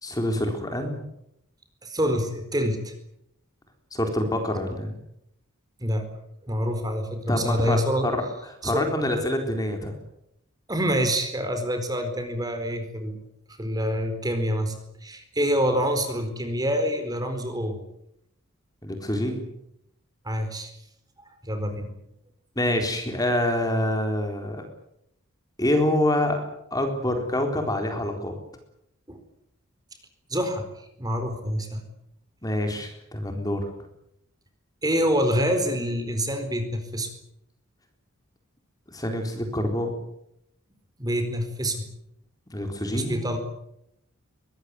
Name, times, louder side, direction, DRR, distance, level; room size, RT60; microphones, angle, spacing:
voice 1, 0.0-1.0 3.9-5.0 7.3-8.2 8.5-10.0 18.8-19.4 22.6-24.6 25.6-26.4 26.7-28.4 32.4-33.7 38.9-39.9 42.5-43.3, left 1 dB, 15° left, 4 dB, 4.0 m, -26 dB
voice 2, 1.8-2.9 5.8-6.0 6.4-8.1 8.6-8.8 10.7-13.2 13.6-14.7 15.0-17.8 20.2-20.7 21.4-21.9 29.1-29.2 30.3-31.8 34.8-37.1 41.0-41.8 42.9-43.4, equal, 20° right, 7 dB, 4.3 m, -26 dB
23.5 x 20.0 x 9.6 m, 0.79 s
head